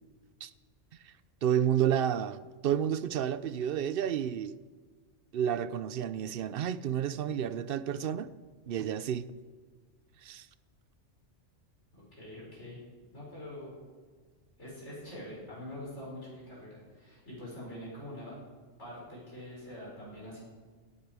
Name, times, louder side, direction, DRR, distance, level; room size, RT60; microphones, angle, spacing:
voice 1, 1.4-4.6 5.3-8.3 8.7-9.3 10.2-10.5, right 9 dB, 60° right, 0.7 m, -30 dB
voice 2, 11.9-12.8 13.1-13.7 14.6-18.4 18.8-20.4, left 1 dB, 75° left, 5.8 m, -44 dB
17.0 x 10.0 x 4.7 m
omnidirectional pair, 1.2 m